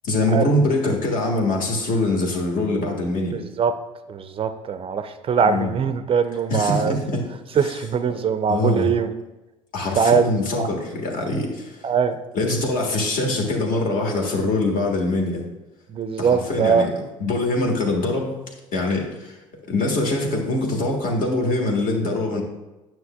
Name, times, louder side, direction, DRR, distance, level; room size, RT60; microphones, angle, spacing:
voice 1, 0.0-3.4 5.4-5.7 6.5-7.2 7.6-7.7 8.5-8.9 9.7-11.9 12.3-15.4 16.2-16.9 17.2-18.3 18.7-19.4 19.7-22.4, left 2 dB, 55° left, 0 dB, 1.5 m, -23 dB
voice 2, 3.3-3.7 4.1-7.0 7.6-9.1 10.0-10.2 10.5-10.7 11.8-12.2 15.9-16.9, right 6 dB, 35° right, 10 dB, 0.4 m, -21 dB
9.4 x 6.0 x 2.2 m, 1.1 s
figure-of-eight pair, 60°, 17 cm